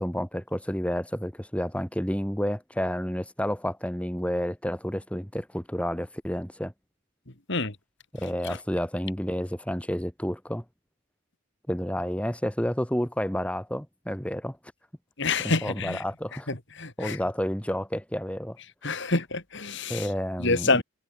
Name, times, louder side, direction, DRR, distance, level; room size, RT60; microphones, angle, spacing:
voice 1, 0.0-6.7 8.1-10.6 11.7-14.6 15.4-16.5 17.0-18.6 19.9-20.8, equal, 5° left, 2.0 m, -30 dB
voice 2, 15.2-16.0 16.5-17.2 18.8-20.1 20.4-20.8, left 3 dB, 55° left, 2.9 m, -27 dB
head